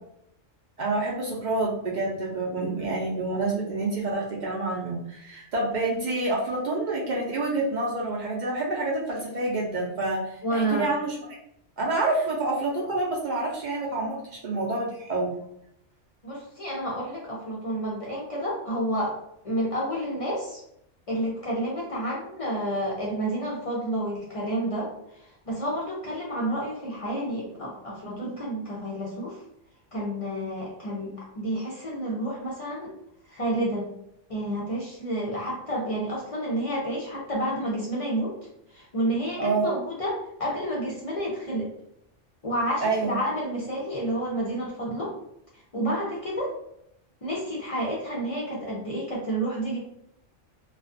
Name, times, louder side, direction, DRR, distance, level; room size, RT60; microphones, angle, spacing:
voice 1, 0.8-11.1 11.8-14.2 14.4-15.3 39.4-39.7 42.8-43.2, right 2 dB, 55° right, -3 dB, 0.5 m, -28 dB
voice 2, 10.4-10.9 16.2-19.2 19.4-20.6 21.1-24.9 25.2-29.4 29.9-32.9 33.3-33.9 34.3-38.4 38.7-41.7 42.4-45.1 45.7-46.5 47.2-49.8, right 1 dB, 45° left, -4 dB, 0.4 m, -30 dB
2.4 x 2.3 x 2.5 m, 0.76 s
omnidirectional pair, 1.3 m